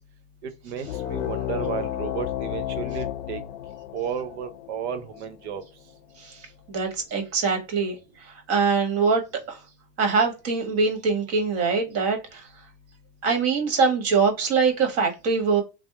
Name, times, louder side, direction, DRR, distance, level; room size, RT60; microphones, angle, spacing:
voice 1, 0.4-3.4 3.9-5.6, right 8 dB, 80° right, 0.9 m, -33 dB
sound 1, 0.8-5.9, left 12 dB, 85° left, 0.6 m, -32 dB
voice 2, 6.7-8.0 8.5-9.2 9.5-9.6 10.0-12.4 13.2-15.6, right 5 dB, 45° right, 1.5 m, -23 dB
3.3 x 2.0 x 2.9 m
supercardioid pair, 120°, 34 cm